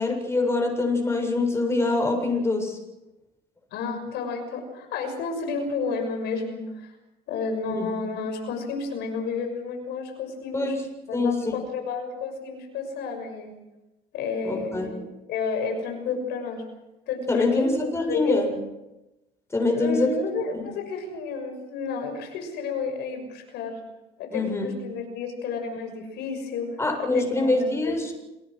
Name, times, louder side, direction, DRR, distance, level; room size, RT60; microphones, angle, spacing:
voice 1, 0.0-2.8 7.7-7.9 10.5-10.8 11.1-11.5 14.4-14.9 17.3-18.5 19.5-20.1 20.5-20.7 24.3-24.8 26.8-28.1, left 2 dB, 15° left, 3 dB, 7.3 m, -24 dB
voice 2, 3.7-6.9 7.3-10.7 11.1-13.5 14.1-16.6 17.1-18.5 19.7-23.8 24.2-26.7 27.0-28.1, left 4 dB, 85° left, 5 dB, 6.5 m, -31 dB
28.5 x 19.5 x 6.3 m, 0.99 s
cardioid pair, 110°, 17 cm